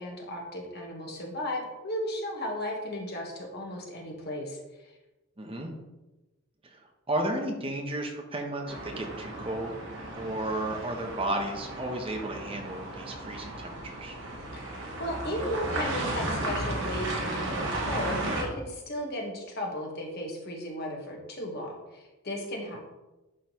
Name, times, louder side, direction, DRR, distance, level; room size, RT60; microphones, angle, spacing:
voice 1, 0.0-4.6 14.5-14.6 15.0-22.8, left 1 dB, 50° left, 0 dB, 1.5 m, -35 dB
voice 2, 5.4-5.7 6.6-6.8 7.1-9.7 10.1-14.2, right 1 dB, 25° right, 2 dB, 1.0 m, -33 dB
sound 1, 8.7-18.4, right 1 dB, 65° right, 1.4 m, -34 dB
11.0 x 3.7 x 3.1 m, 1.0 s
head